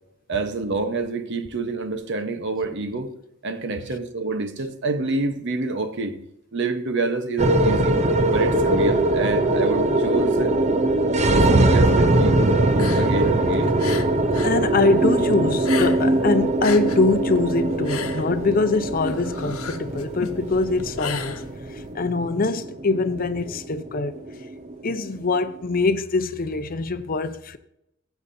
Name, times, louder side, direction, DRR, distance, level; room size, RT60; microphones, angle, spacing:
voice 1, 0.3-3.1 3.4-6.2 6.5-8.0 8.3-10.6 11.2-12.5 13.0-13.7, right 3 dB, 55° right, 1.0 m, -27 dB
sound 1, 7.4-25.8, right 1 dB, 30° right, 0.6 m, -21 dB
sound 2, 12.7-14.6 14.9-16.2 16.5-21.9, left 6 dB, 85° left, 0.9 m, -34 dB
voice 2, 14.4-21.4 21.7-24.2 24.8-27.6, left 3 dB, 40° left, 0.6 m, -23 dB
15.5 x 8.1 x 2.7 m
head